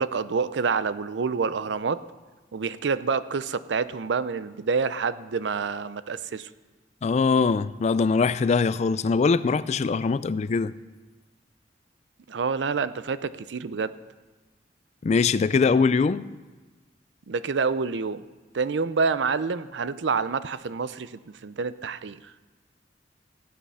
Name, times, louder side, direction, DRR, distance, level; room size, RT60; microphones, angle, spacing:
voice 1, 0.0-2.0 2.5-6.5 12.3-13.9 17.3-18.2 18.5-22.2, right 5 dB, 75° right, 0.5 m, -27 dB
voice 2, 7.0-10.7 15.0-16.3, left 4 dB, 40° left, 0.3 m, -22 dB
15.5 x 8.7 x 5.6 m
head